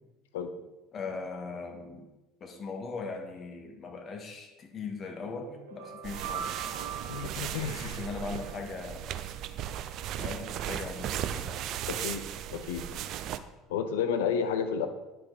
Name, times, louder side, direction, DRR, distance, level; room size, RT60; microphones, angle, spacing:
voice 1, 0.9-2.1 2.4-7.0 7.5-9.1 10.2-11.5, left 4 dB, 40° left, 2 dB, 1.8 m, -40 dB
sound 1, 5.5-8.6, right 8 dB, 85° right, 1.3 m, -41 dB
sound 2, 6.0-13.4, right 10 dB, 55° right, 0.5 m, -36 dB
voice 2, 7.1-8.0 11.9-12.3 12.5-12.9 13.7-14.9, left 7 dB, 75° left, 8 dB, 0.7 m, -31 dB
10.5 x 6.0 x 4.0 m, 1.1 s
hypercardioid pair, 70°, 0 cm